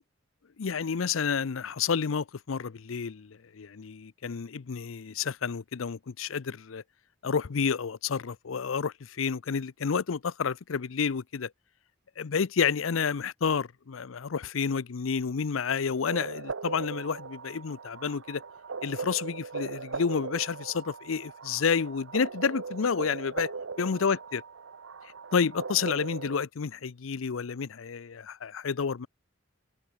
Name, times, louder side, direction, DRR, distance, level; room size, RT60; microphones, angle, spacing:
voice 1, 0.6-6.8 7.2-11.5 12.2-18.4 18.8-23.5 23.8-24.4 25.3-29.1, left 6 dB, 90° left, 0.6 m, -30 dB
sound 1, 16.1-26.4, right 4 dB, 80° right, 0.9 m, -39 dB
head